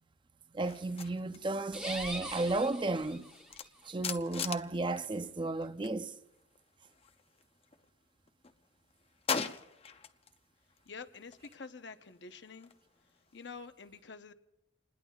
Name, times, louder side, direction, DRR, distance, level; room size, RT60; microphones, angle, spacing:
voice 1, 0.5-3.3 3.8-6.1, right 2 dB, 25° right, 0.5 m, -33 dB
sound 1, 0.7-6.0 6.3-7.9 8.3-10.4 10.7-13.5, left 6 dB, 35° left, 0.6 m, -43 dB
sound 2, 1.7-3.7, right 1 dB, 5° right, 1.2 m, -42 dB
voice 2, 10.9-12.7 13.3-14.3, left 4 dB, 70° left, 0.9 m, -47 dB
29.0 x 20.0 x 2.4 m
head